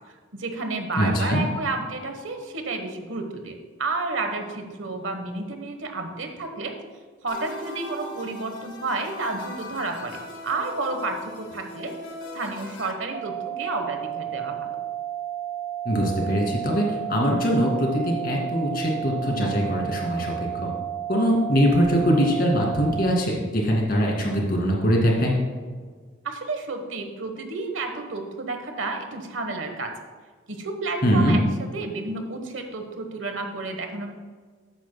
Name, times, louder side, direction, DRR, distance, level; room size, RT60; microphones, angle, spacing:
voice 1, 0.3-6.7 7.2-11.9 12.3-14.7 26.2-29.9 30.5-31.4 31.7-34.1, right 3 dB, 75° right, 5 dB, 1.2 m, -31 dB
voice 2, 1.0-1.4 15.9-20.3 20.6-20.7 21.1-25.3 31.0-31.4, equal, 50° left, -1 dB, 2.3 m, -22 dB
sound 1, 7.3-12.9, left 1 dB, 65° left, 1.5 m, -39 dB
sound 2, 13.1-23.1, right 11 dB, 40° right, 0.8 m, -32 dB
13.0 x 9.2 x 2.2 m, 1.5 s
head